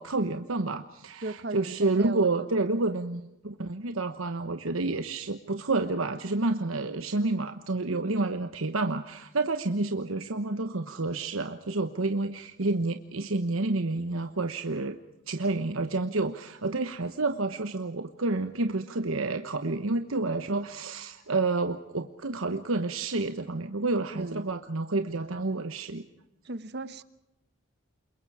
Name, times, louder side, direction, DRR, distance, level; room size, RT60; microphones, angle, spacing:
voice 1, 0.0-15.0 15.3-26.0, right 3 dB, 85° right, 8 dB, 1.1 m, -29 dB
voice 2, 1.2-2.8 24.1-24.5 26.4-27.0, right 3 dB, 50° right, 14 dB, 1.1 m, -37 dB
29.0 x 22.5 x 4.9 m, 0.90 s
head